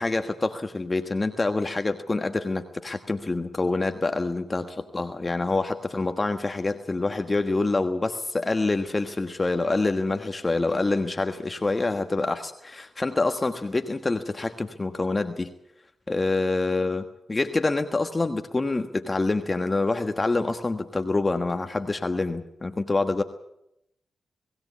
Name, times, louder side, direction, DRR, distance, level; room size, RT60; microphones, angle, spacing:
voice 1, 0.0-15.5 16.1-23.2, left 3 dB, 35° left, 7 dB, 1.4 m, -26 dB
21.0 x 16.5 x 8.3 m, 0.81 s
supercardioid pair, 40°, 0 cm